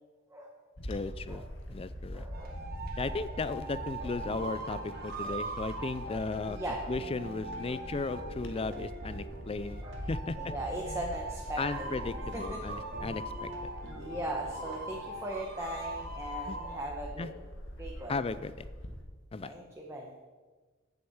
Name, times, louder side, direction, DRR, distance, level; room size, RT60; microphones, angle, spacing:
Bird / Wind, 0.8-19.0, equal, 65° left, 1.7 m, -44 dB
voice 1, 0.8-2.2 3.0-6.6 6.9-10.4 10.9-11.0 11.6-13.5 16.5-16.6 17.2-17.3 18.1-18.6 19.3-19.5, left 3 dB, 30° left, 14 dB, 0.4 m, -36 dB
voice 2, 2.1-2.6 3.3-3.4 4.0-4.5 5.2-5.4 6.0-7.0 7.6-7.8 8.5-8.7 9.8-9.9 10.3-11.9 12.3-12.9 14.0-17.3 17.8-18.1 19.4-20.1, right 1 dB, 15° right, -1 dB, 1.2 m, -40 dB
sound 1, 2.3-16.9, right 2 dB, 50° right, 2.0 m, -42 dB
sound 2, 4.2-15.2, right 1 dB, 70° right, 2.3 m, -48 dB
8.7 x 7.9 x 8.8 m, 1.4 s
head